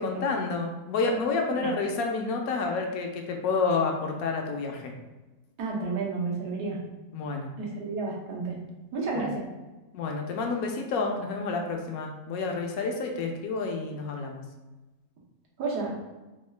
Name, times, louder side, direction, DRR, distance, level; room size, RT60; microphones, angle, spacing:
voice 1, 0.0-4.9 7.1-7.5 9.2-9.3 9.9-14.4, left 4 dB, 75° left, 2 dB, 1.0 m, -29 dB
voice 2, 5.6-6.8 7.6-8.5 8.9-9.5 15.6-15.9, right 3 dB, 90° right, -3 dB, 1.5 m, -31 dB
3.6 x 2.3 x 3.2 m, 1.1 s
omnidirectional pair, 1.6 m